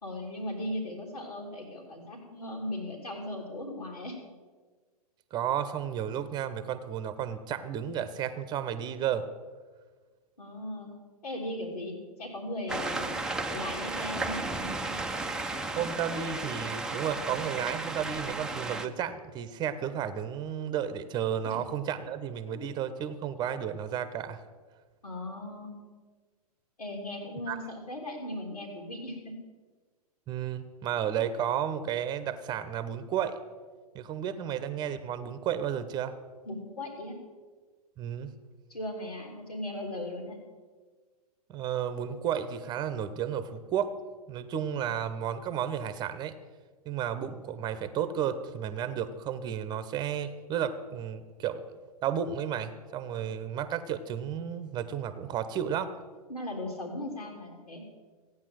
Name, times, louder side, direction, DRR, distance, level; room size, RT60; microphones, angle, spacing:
voice 1, 0.0-4.1 10.4-10.9 11.2-14.9 21.4-21.6 22.5-22.7 25.0-25.8 26.8-29.3 36.4-37.2 38.7-40.4 56.3-57.8, left 1 dB, 80° left, -2 dB, 3.3 m, -38 dB
voice 2, 5.3-9.3 15.8-24.4 27.5-27.6 30.3-33.4 33.9-36.2 38.0-38.3 41.5-44.0 44.3-46.3 46.8-51.6 52.0-55.9, right 9 dB, 20° right, 13 dB, 1.0 m, -32 dB
sound 1, 12.7-18.9, right 3 dB, 5° right, 0.7 m, -34 dB
15.5 x 9.6 x 7.7 m, 1.4 s
figure-of-eight pair, 115°, 20 cm